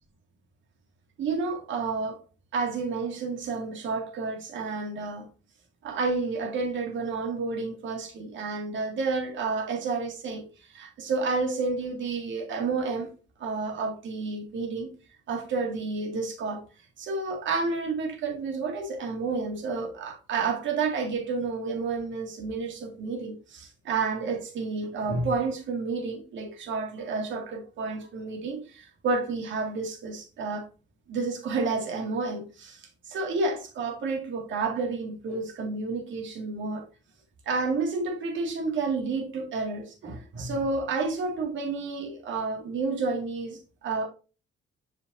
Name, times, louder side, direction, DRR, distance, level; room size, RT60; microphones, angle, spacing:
voice 1, 1.2-2.2 2.5-5.3 5.8-13.1 13.4-14.9 15.3-16.6 17.0-30.7 31.1-36.9 37.5-44.1, right 4 dB, 70° right, 2.0 m, -30 dB
7.6 x 5.0 x 2.6 m
cardioid pair, 90°, 20 cm